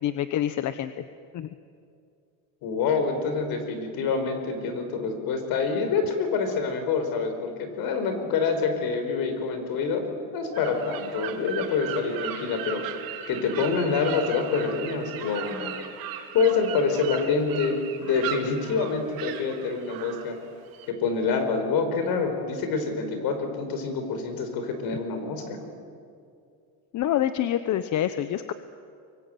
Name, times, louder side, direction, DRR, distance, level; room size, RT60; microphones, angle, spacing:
voice 1, 0.0-1.0 1.3-1.5 26.9-28.5, left 11 dB, 50° left, 11 dB, 1.0 m, -26 dB
voice 2, 2.6-10.0 10.3-12.8 13.3-15.7 16.3-20.4 20.9-25.7, left 5 dB, 70° left, 6 dB, 5.2 m, -26 dB
sound 1, 10.5-20.9, right 10 dB, 65° right, 3.0 m, -37 dB
24.5 x 23.5 x 9.3 m, 2.4 s
cardioid pair, 130°, 38 cm